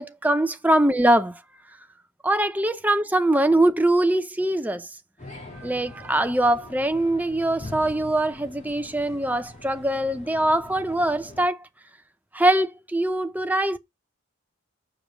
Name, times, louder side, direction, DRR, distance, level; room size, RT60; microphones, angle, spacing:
voice 1, 0.0-1.4 2.2-4.9 5.6-11.7 12.3-13.8, right 1 dB, 5° right, 0.6 m, -22 dB
sound 1, 5.2-11.5, left 2 dB, 30° left, 2.7 m, -43 dB
7.3 x 5.1 x 5.1 m
head